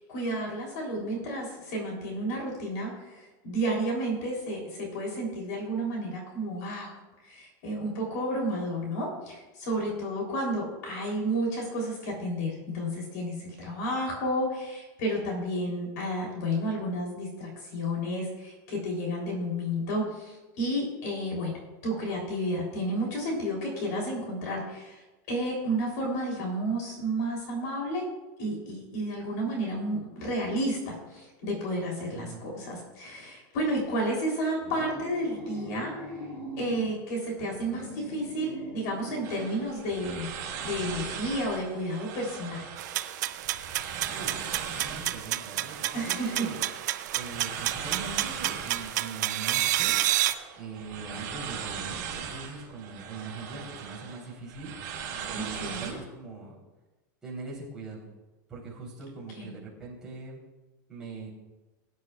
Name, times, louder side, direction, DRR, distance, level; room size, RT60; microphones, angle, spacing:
voice 1, 0.0-6.9 7.2-25.0 25.3-28.0 28.4-35.9 36.6-42.7 45.9-46.4 55.3-56.0 59.4-59.5, right 1 dB, 55° left, -1 dB, 3.4 m, -31 dB
voice 2, 32.1-32.4 37.4-37.5 44.0-44.4 44.7-46.7 47.1-50.0 50.5-56.5 57.2-58.1 58.5-60.4 60.9-61.3, right 4 dB, 5° right, -9 dB, 3.6 m, -41 dB
sound 1, 34.6-36.9 37.5-39.7, equal, 25° left, 2.6 m, -41 dB
sound 2, 39.2-55.9, right 7 dB, 40° right, 3.7 m, -39 dB
sound 3, 42.8-50.3, right 14 dB, 65° right, 0.5 m, -30 dB
21.0 x 9.4 x 2.4 m, 1.1 s
supercardioid pair, 180°, 10 cm